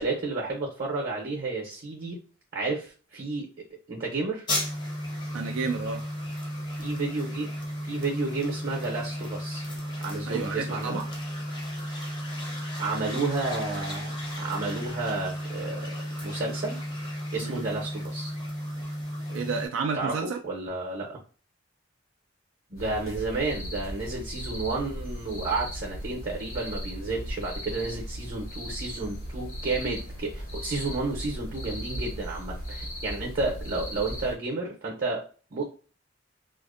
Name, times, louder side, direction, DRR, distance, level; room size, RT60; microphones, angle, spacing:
voice 1, 0.0-2.2 2.5-3.5 3.9-4.5 6.8-7.5 7.9-9.6 10.0-11.0 12.8-15.8 16.2-16.8 17.3-18.3 19.9-21.2 22.7-35.2 35.5-35.6, right 3 dB, 50° right, -1 dB, 0.7 m, -31 dB
sound 1, 4.5-19.7, equal, 25° left, 0.6 m, -34 dB
voice 2, 5.3-6.0 10.3-11.0 17.4-17.7 19.3-20.4, right 5 dB, 70° right, 3 dB, 0.3 m, -31 dB
sound 2, 22.8-34.3, equal, 85° left, 1.2 m, -37 dB
2.5 x 2.1 x 2.4 m, 0.37 s
head